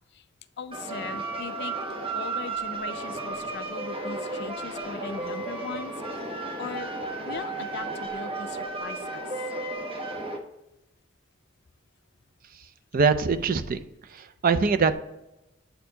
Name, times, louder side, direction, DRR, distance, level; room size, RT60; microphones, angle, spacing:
voice 1, 0.6-1.8 2.1-6.9 7.2-9.3, left 6 dB, 60° left, 12 dB, 0.4 m, -39 dB
sound 1, 0.7-10.4, right 3 dB, 30° right, 0.8 m, -33 dB
voice 2, 12.9-13.8 14.1-14.9, right 5 dB, 45° right, 11 dB, 0.4 m, -23 dB
7.9 x 4.3 x 2.7 m, 0.92 s
head